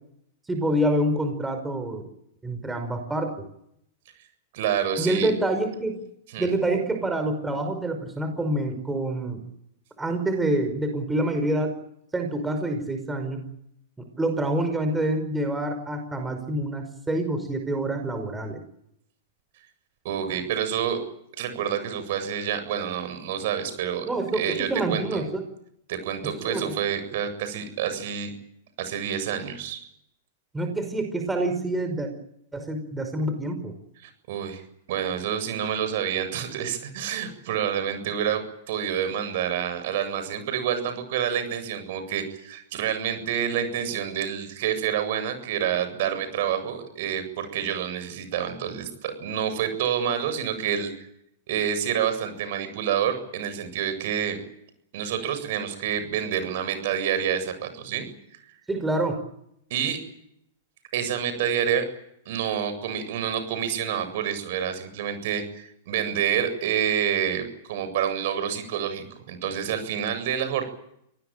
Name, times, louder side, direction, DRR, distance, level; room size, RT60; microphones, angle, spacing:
voice 1, 0.5-2.0 2.4-3.3 5.0-6.0 6.4-9.4 10.0-11.7 12.1-13.4 14.0-18.6 24.0-25.3 26.5-26.8 30.5-32.1 32.5-33.7 58.7-59.2, right 1 dB, 10° right, 6 dB, 5.3 m, -27 dB
voice 2, 4.5-5.3 6.3-6.5 20.0-21.0 21.4-24.1 24.3-25.2 25.9-28.3 28.8-29.8 34.0-34.6 34.9-38.4 38.7-50.9 51.5-54.4 54.9-58.1 59.7-60.0 60.9-61.8 62.3-70.6, right 9 dB, 60° right, 9 dB, 7.9 m, -28 dB
25.5 x 19.5 x 9.2 m, 0.74 s
hypercardioid pair, 120°, 0 cm